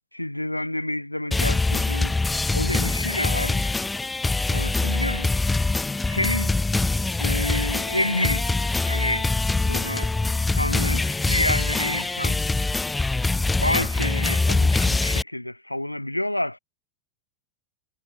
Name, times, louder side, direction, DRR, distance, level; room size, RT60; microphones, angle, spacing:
voice 1, 0.1-2.1 2.5-3.7 4.5-5.3 6.1-6.6 7.2-9.3 9.7-10.1 10.5-12.4 13.6-16.6, left 1 dB, 85° left, 0.7 m, -28 dB
sound 1, 1.3-15.2, left 3 dB, 10° left, 0.9 m, -24 dB
figure-of-eight pair, 90°, 0 cm